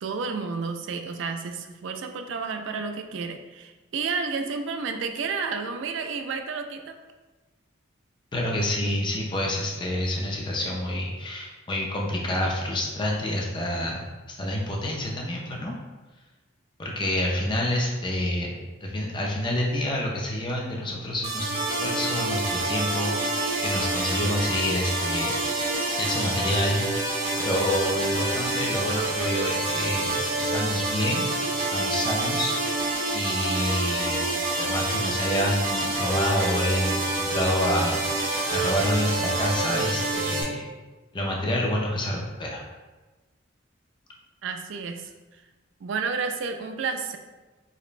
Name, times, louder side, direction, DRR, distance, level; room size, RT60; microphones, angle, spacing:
voice 1, 0.0-7.0 44.4-45.1 45.8-47.2, right 5 dB, 65° right, 6 dB, 0.3 m, -31 dB
voice 2, 8.3-15.7 16.8-18.5 18.8-25.4 26.0-26.8 27.4-31.3 31.7-32.5 33.1-34.2 34.6-38.0 38.5-40.7 41.1-42.6, left 1 dB, 25° left, -1 dB, 0.4 m, -28 dB
sound 1, 21.2-40.4, right 2 dB, 80° right, 1.5 m, -27 dB
4.9 x 2.1 x 2.5 m, 1.2 s
head